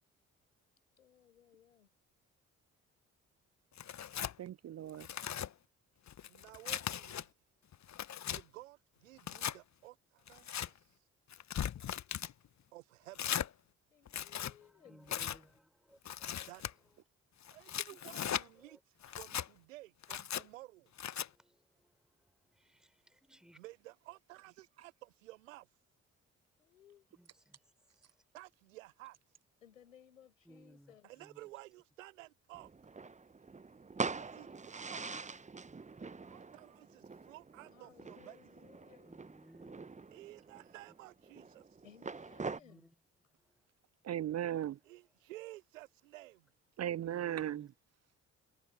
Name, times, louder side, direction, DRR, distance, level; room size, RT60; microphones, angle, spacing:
voice 1, 1.0-1.9 6.2-6.5 13.9-15.1 23.3-23.7 26.6-27.1 29.6-31.1 37.7-39.2 41.8-42.9, left 9 dB, 85° left, 5.8 m, -63 dB
Tearing, 3.8-4.4 4.9-5.5 6.1-7.2 7.7-8.4 9.2-9.6 10.3-10.7 11.3-12.3 13.2-13.5 14.1-14.5 15.1-15.4 16.1-16.7 17.4-18.5 19.0-19.5 20.0-20.4 21.0-21.3, left 10 dB, 45° left, 1.3 m, -38 dB
voice 2, 4.4-5.1 44.0-44.8 46.8-47.7, right 11 dB, 40° right, 0.7 m, -37 dB
voice 3, 6.3-7.3 8.2-8.8 9.0-10.9 12.7-13.5 16.5-16.6 17.5-18.8 19.1-20.9 23.6-25.7 28.3-29.2 31.0-32.7 34.2-35.1 36.3-38.5 40.1-41.6 44.9-46.5, right 18 dB, 80° right, 0.9 m, -53 dB
voice 4, 14.6-17.0 17.5-17.6 17.9-18.1 18.5-19.3 21.3-23.6 27.2-28.2 30.4-31.5 34.9-35.1 39.0-40.2 42.6-43.0 43.3-43.7 45.1-45.2 47.0-47.7, equal, ahead, 4.0 m, -63 dB
sound 1, 32.5-42.6, right 4 dB, 20° right, 1.0 m, -44 dB
figure-of-eight pair, 40°, 38 cm